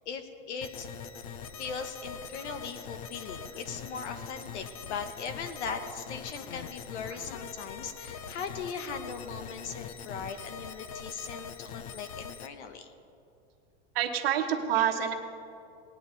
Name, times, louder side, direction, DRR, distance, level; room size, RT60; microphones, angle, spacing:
voice 1, 0.0-0.9 1.6-12.9, left 5 dB, 80° left, 8 dB, 1.3 m, -39 dB
sound 1, 0.6-12.5, left 6 dB, 35° left, 0.4 m, -43 dB
voice 2, 13.9-15.1, right 9 dB, 60° right, 5 dB, 1.2 m, -28 dB
19.0 x 9.6 x 4.1 m, 2.6 s
supercardioid pair, 180°, 34 cm